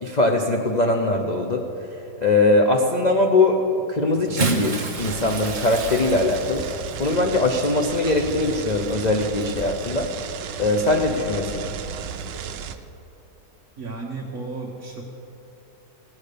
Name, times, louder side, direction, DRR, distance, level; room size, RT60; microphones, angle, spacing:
voice 1, 0.0-1.7 2.2-3.6 3.9-6.7 7.0-10.1 10.6-11.7, left 2 dB, 70° left, 2 dB, 0.4 m, -21 dB
Bathtub (filling or washing) / Splash splatter, 4.1-9.8 10.7-10.9 12.3-12.4, right 3 dB, 35° right, 0.9 m, -31 dB
sound 1, 5.0-12.8, right 6 dB, 80° right, 1.3 m, -34 dB
voice 2, 13.8-15.0, right 3 dB, 55° right, -2 dB, 1.5 m, -33 dB
17.0 x 7.1 x 6.7 m, 2.9 s
omnidirectional pair, 1.9 m